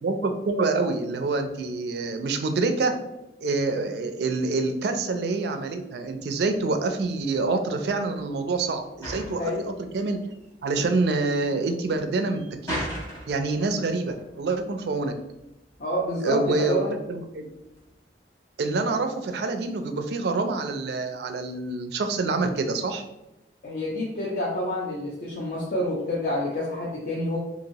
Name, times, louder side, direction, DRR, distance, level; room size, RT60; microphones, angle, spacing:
voice 1, 0.0-2.9 3.4-10.2 10.6-12.9 13.3-15.1 16.2-16.8 17.1-17.5 18.6-23.0, right 3 dB, 60° right, 6 dB, 0.4 m, -26 dB
sound 1, 6.2-18.0, equal, 20° left, 1.1 m, -41 dB
voice 2, 15.8-16.9 23.6-27.4, left 1 dB, 50° left, -4 dB, 0.6 m, -28 dB
2.9 x 2.7 x 2.6 m, 0.90 s
head